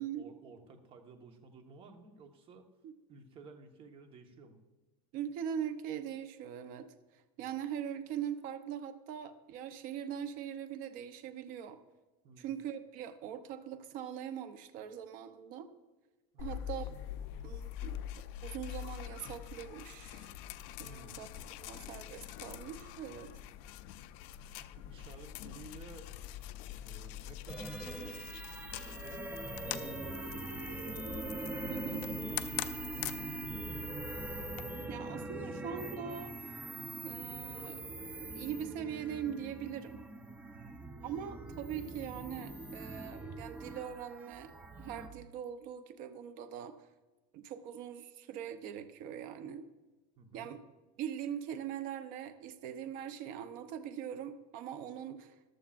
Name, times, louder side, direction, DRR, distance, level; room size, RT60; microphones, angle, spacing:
voice 1, 0.0-2.6 3.1-4.6 7.4-7.5 12.2-12.5 16.3-16.5 20.8-21.1 24.5-26.1 26.7-29.1 29.4-31.0 31.6-33.9 40.5-40.8 50.2-50.5, right 3 dB, 30° right, 5 dB, 1.3 m, -54 dB
voice 2, 5.1-6.9 7.4-11.8 12.4-15.7 16.4-16.9 17.4-18.0 18.4-20.3 20.8-21.3 21.6-23.3 31.7-32.1 34.9-36.4 37.0-37.8 38.2-40.0 41.0-44.5 44.8-46.8 47.3-49.7 50.3-50.6 51.0-55.4, right 9 dB, 45° right, 9 dB, 0.8 m, -41 dB
sound 1, 16.4-34.6, left 12 dB, 50° left, 0.5 m, -44 dB
sound 2, 27.5-45.1, right 2 dB, 10° right, 0.8 m, -42 dB
14.5 x 12.0 x 2.5 m, 1.2 s
supercardioid pair, 160°, 19 cm